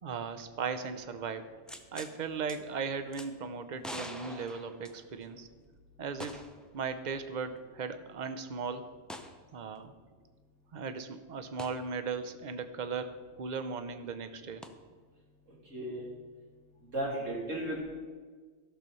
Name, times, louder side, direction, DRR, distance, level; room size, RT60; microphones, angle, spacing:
voice 1, 0.0-1.5 1.9-5.5 6.0-6.4 6.7-8.9 9.5-9.9 10.7-14.6, right 5 dB, 45° right, 10 dB, 0.7 m, -37 dB
sound 1, 1.7-2.1 2.5-2.6 3.1-3.3 3.8-5.3 6.2-6.6 7.0-7.1 9.1-9.4 11.6-11.8 14.6-14.7, left 1 dB, ahead, 0.4 m, -44 dB
voice 2, 15.7-16.1 16.9-17.8, right 1 dB, 85° right, -4 dB, 3.2 m, -34 dB
13.5 x 6.6 x 5.5 m, 1.5 s
omnidirectional pair, 1.3 m